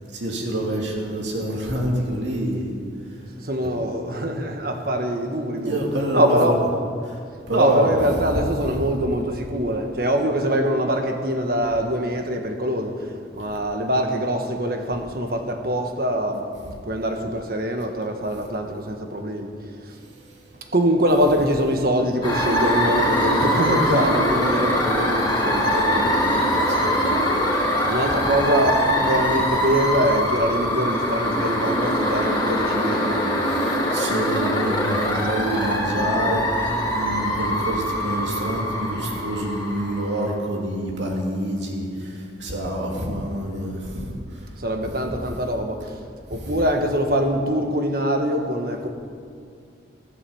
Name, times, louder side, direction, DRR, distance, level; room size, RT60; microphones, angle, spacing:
voice 1, 0.1-2.8 5.7-6.6 7.0-7.2 7.5-7.9 8.8-8.9 26.7-27.0 33.5-44.1 44.8-44.9, right 1 dB, 75° right, -2 dB, 2.7 m, -27 dB
voice 2, 3.4-6.6 7.5-16.5 16.8-19.5 20.7-26.3 27.8-33.4 35.1-35.8 44.6-45.8 46.3-48.9, equal, 50° right, 4 dB, 1.6 m, -24 dB
sound 1, 22.2-40.2, equal, 25° left, 3.3 m, -23 dB
15.0 x 12.5 x 7.1 m, 2.2 s
head